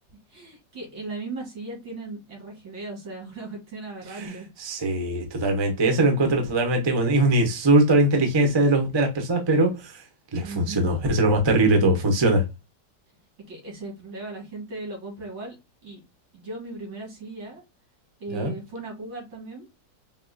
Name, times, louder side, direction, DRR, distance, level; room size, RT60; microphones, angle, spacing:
voice 1, 0.3-4.5 10.4-10.9 13.5-15.6 15.8-16.0 16.3-17.6 18.2-19.7, right 2 dB, 85° right, 2.9 m, -37 dB
voice 2, 4.2-10.0 10.3-12.4 18.3-18.5, right 2 dB, 40° right, 0.4 m, -21 dB
5.3 x 2.3 x 2.5 m
omnidirectional pair, 2.0 m